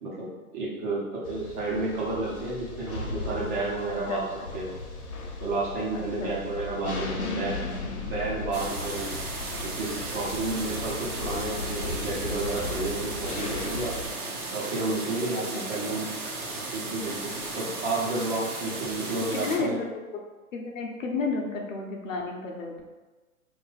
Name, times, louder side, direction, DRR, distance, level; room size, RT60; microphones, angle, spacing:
voice 1, 0.0-4.3 4.5-4.7 5.4-7.6 7.9-9.1 9.6-14.0 14.5-16.1 16.7-19.7, right 2 dB, 35° right, -5 dB, 1.1 m, -31 dB
sound 1, 1.2-14.1, left 3 dB, 90° left, 0.9 m, -36 dB
voice 2, 5.9-6.6 15.5-15.9 19.3-19.8 20.5-22.8, left 3 dB, 60° left, 1 dB, 0.8 m, -32 dB
sound 2, 8.5-19.6, right 2 dB, 80° right, 1.0 m, -35 dB
2.9 x 2.6 x 3.9 m, 1.2 s
hypercardioid pair, 130°, 44 cm